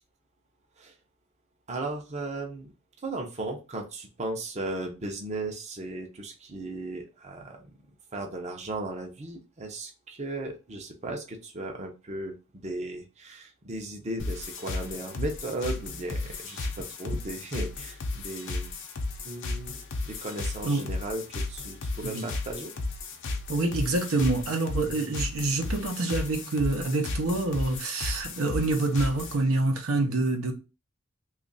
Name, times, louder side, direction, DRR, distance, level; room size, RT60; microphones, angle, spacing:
voice 1, 1.7-2.7 3.0-7.8 8.1-18.7 19.2-19.8 20.1-22.7, right 2 dB, 35° right, 0.6 m, -36 dB
sound 1, 14.2-29.4, left 3 dB, 60° left, 0.6 m, -34 dB
voice 2, 23.5-30.5, right 2 dB, 80° right, 0.7 m, -27 dB
3.1 x 2.4 x 3.9 m
head